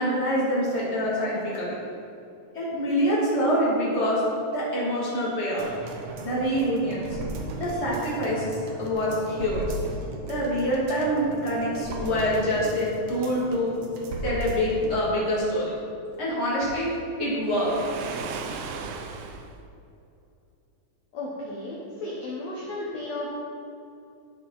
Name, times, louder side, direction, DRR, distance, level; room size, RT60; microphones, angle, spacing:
voice 1, 0.0-1.7 2.5-4.2 4.5-5.7 6.2-7.0 7.6-9.6 10.3-13.7 14.2-15.7 16.2-16.9 17.2-17.7, equal, 20° left, -7 dB, 2.2 m, -25 dB
sound 1, 5.6-15.0 15.4-15.5, right 2 dB, 70° right, 2.0 m, -36 dB
Waves surf, 17.5-19.6, right 5 dB, 85° right, 2.3 m, -36 dB
voice 2, 21.1-23.3, left 2 dB, 60° left, -6 dB, 2.0 m, -34 dB
12.5 x 5.8 x 4.1 m, 2.6 s
omnidirectional pair, 3.9 m